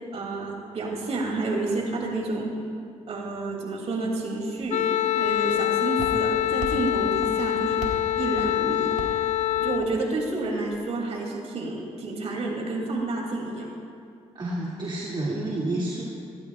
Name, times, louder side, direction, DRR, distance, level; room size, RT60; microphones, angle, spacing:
voice 1, 0.1-2.5 3.1-7.8 8.2-9.3 9.6-13.7, right 2 dB, 60° right, 0 dB, 2.8 m, -30 dB
Walk footsteps, 4.6-10.8, right 3 dB, 75° right, 2.0 m, -40 dB
Wind instrument woodwind instrument, 4.7-9.9, left 12 dB, 75° left, 0.4 m, -25 dB
voice 2, 14.3-16.0, right 1 dB, 40° right, -5 dB, 2.6 m, -29 dB
19.5 x 16.5 x 2.5 m, 2.5 s
cardioid pair, 85°, 12 cm